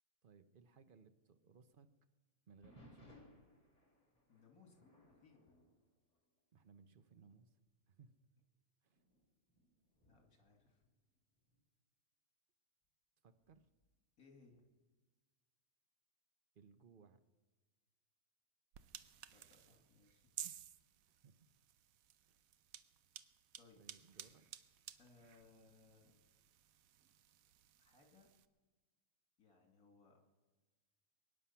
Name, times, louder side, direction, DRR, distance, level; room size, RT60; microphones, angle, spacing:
voice 1, 0.2-1.9 2.5-3.3 6.5-7.6 7.9-8.1 8.8-9.0 13.2-13.7 16.5-17.2 21.1-21.3 22.3-22.4 23.8-24.5, right 5 dB, 45° right, 9 dB, 0.7 m, -64 dB
sound 1, 2.6-6.8 7.1-7.4 8.1-8.2 8.9-11.6 13.4-13.9, left 1 dB, 25° left, 3.8 m, -66 dB
voice 2, 4.3-5.6 10.1-10.8 14.2-14.7 19.3-20.3 23.6-23.8 25.0-26.2 27.8-28.3 29.4-30.2, left 4 dB, 60° left, 1 dB, 2.9 m, -67 dB
sound 2, 18.7-28.5, right 10 dB, 65° right, 1.0 m, -55 dB
23.0 x 9.8 x 5.7 m, 1.3 s
omnidirectional pair, 1.7 m